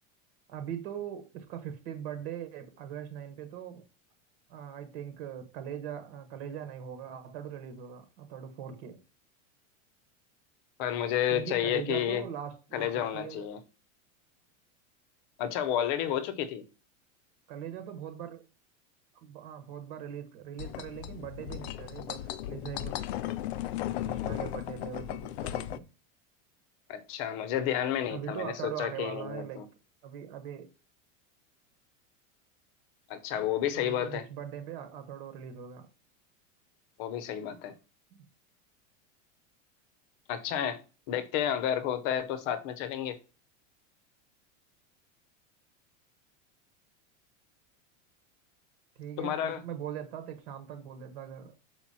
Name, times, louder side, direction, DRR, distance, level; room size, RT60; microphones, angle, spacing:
voice 1, 0.5-3.8 4.5-9.0 11.3-13.5 17.5-18.4 19.1-23.1 24.0-25.9 28.1-29.7 30.0-30.7 33.7-35.9 38.1-38.3 48.9-51.5, right 9 dB, 50° right, 1.3 m, -41 dB
voice 2, 10.8-12.2 12.7-13.6 15.4-16.6 26.9-29.7 33.1-34.2 37.0-37.7 40.3-40.8 41.1-43.2 49.2-49.6, left 10 dB, 40° left, 0.8 m, -31 dB
sound 1, 20.6-25.8, left 13 dB, 55° left, 0.5 m, -36 dB
6.2 x 5.0 x 4.1 m
supercardioid pair, 170°, 39 cm